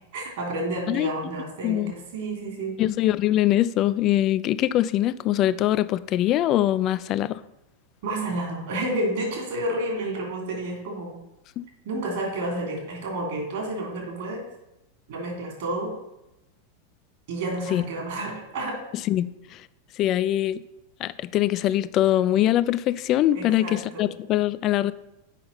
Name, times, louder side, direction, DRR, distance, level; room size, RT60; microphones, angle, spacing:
voice 1, 0.1-2.8 8.0-11.2 11.8-14.4 15.1-15.9 17.3-18.8 23.3-24.0, right 1 dB, 55° right, 0 dB, 3.0 m, -30 dB
voice 2, 2.8-7.4 11.6-11.7 17.7-17.8 19.1-19.3 20.0-20.6 21.0-24.9, left 13 dB, 35° left, 16 dB, 0.4 m, -23 dB
7.5 x 5.5 x 5.6 m, 0.92 s
figure-of-eight pair, 90°, 0 cm